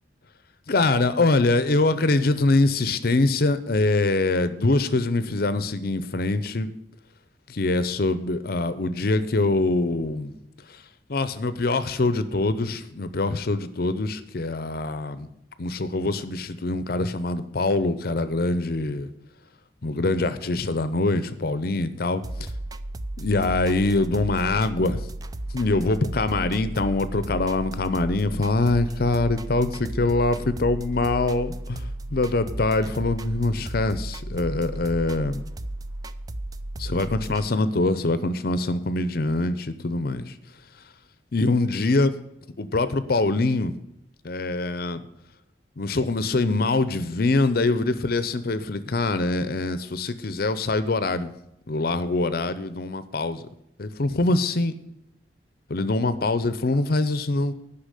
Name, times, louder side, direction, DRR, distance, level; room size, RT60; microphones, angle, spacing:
voice 1, 0.7-6.7 7.5-10.3 10.7-10.8 11.1-15.3 15.6-19.1 19.8-22.2 23.2-25.0 25.5-35.4 36.8-40.3 41.3-42.1 42.6-43.8 44.2-45.0 45.8-51.3 51.7-53.4 53.8-54.7 55.7-57.5, left 2 dB, 60° left, 13 dB, 0.7 m, -24 dB
sound 1, 22.2-37.5, right 1 dB, 20° right, 0.4 m, -34 dB
10.0 x 5.8 x 8.2 m, 0.82 s
head